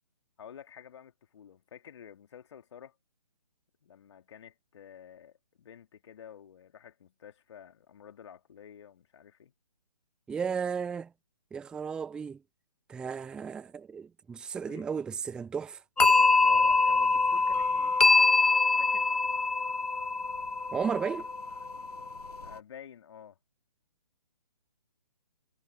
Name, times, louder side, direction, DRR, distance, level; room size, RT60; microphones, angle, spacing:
voice 1, 0.4-2.9 3.8-9.5 14.7-14.9 16.4-18.0 18.8-19.1 22.4-23.4, left 8 dB, 45° left, 2.9 m, -50 dB
voice 2, 10.3-11.1 11.5-12.4 12.9-15.8 20.7-21.2, right 6 dB, 5° right, 0.6 m, -34 dB
sound 1, 16.0-22.6, left 3 dB, 85° left, 1.0 m, -24 dB
figure-of-eight pair, 135°, 20 cm